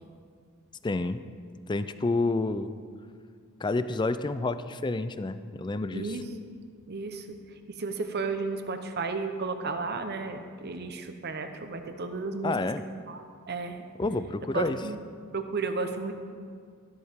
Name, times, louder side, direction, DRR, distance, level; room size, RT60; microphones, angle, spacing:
voice 1, 0.8-1.2 1.7-2.8 3.6-6.2 12.4-12.9 14.0-14.8, left 3 dB, 20° left, 12 dB, 0.4 m, -29 dB
voice 2, 5.9-6.2 6.9-7.3 7.7-12.5 13.1-13.9 14.5-15.0 15.3-16.1, right 4 dB, 50° right, 7 dB, 0.9 m, -33 dB
14.0 x 12.5 x 3.7 m, 2.1 s
head